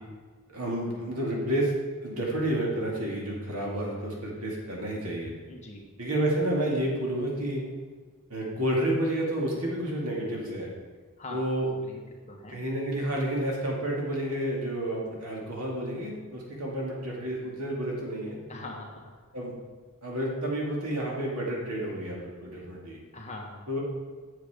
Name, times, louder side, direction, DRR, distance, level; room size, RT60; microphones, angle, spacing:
voice 1, 0.5-1.7 2.0-5.3 6.0-7.6 8.3-10.7 11.3-12.0 12.5-18.4 19.3-19.5 20.0-23.0 23.7-23.8, right 1 dB, 90° right, -2 dB, 2.4 m, -30 dB
voice 2, 5.5-5.9 11.2-11.4 11.7-12.0 12.3-12.6 18.5-19.1 23.1-23.6, left 2 dB, 30° left, -1 dB, 1.3 m, -42 dB
8.6 x 7.3 x 5.0 m, 1.5 s
head